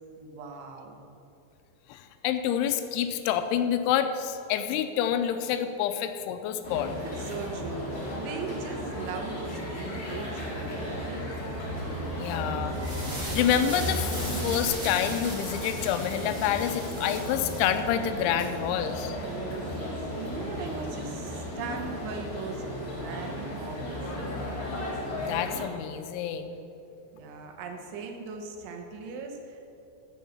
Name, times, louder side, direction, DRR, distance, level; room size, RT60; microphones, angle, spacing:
voice 1, 0.2-1.0 7.0-11.3 12.1-12.7 19.2-24.0 27.1-29.6, right 4 dB, 85° right, 4 dB, 3.5 m, -39 dB
voice 2, 1.9-6.9 12.1-12.7 13.3-14.1 14.4-19.2 25.2-26.5, left 9 dB, 85° left, 8 dB, 3.0 m, -28 dB
sound 1, 6.6-25.6, equal, 40° left, 1.7 m, -34 dB
sound 2, 12.6-17.8, right 1 dB, 40° right, 1.1 m, -38 dB
13.0 x 5.5 x 7.2 m, 2.8 s
omnidirectional pair, 5.3 m